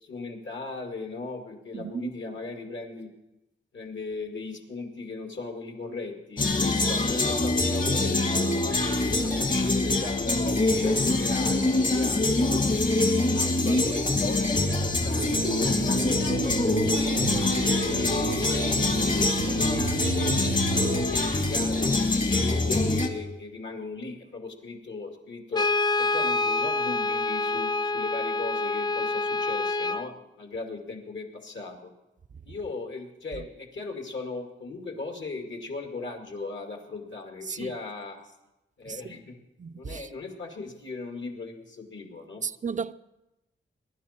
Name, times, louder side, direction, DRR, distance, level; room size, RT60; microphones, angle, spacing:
voice 1, 0.0-3.1 3.7-8.2 8.6-12.4 13.3-16.6 17.2-20.4 20.8-25.7 26.0-31.9 32.4-38.2 38.8-39.4 39.7-42.4, left 3 dB, 65° left, 2.2 m, -37 dB
voice 2, 1.7-2.1 33.3-33.5 37.4-37.8 38.9-39.2 39.6-40.1 42.4-42.9, right 6 dB, 40° right, 0.4 m, -35 dB
sound 1, 6.4-23.1, left 2 dB, 40° left, 1.6 m, -24 dB
sound 2, 15.2-21.1, right 8 dB, 85° right, 0.8 m, -34 dB
Brass instrument, 25.5-30.1, left 3 dB, 20° left, 0.4 m, -27 dB
21.0 x 11.5 x 4.3 m
wide cardioid pair, 105°, 21 cm